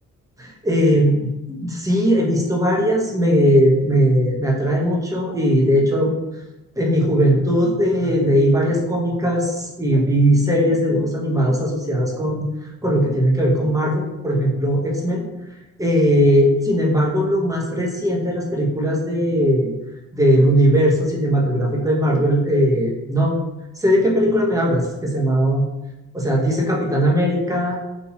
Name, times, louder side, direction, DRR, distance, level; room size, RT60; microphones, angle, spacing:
voice 1, 0.4-6.1 6.8-12.5 12.8-15.3 15.8-19.7 20.1-23.3 23.8-25.6 26.1-27.8, equal, 10° right, -3 dB, 1.1 m, -19 dB
5.7 x 2.7 x 2.9 m, 0.98 s
cardioid pair, 90°, 30 cm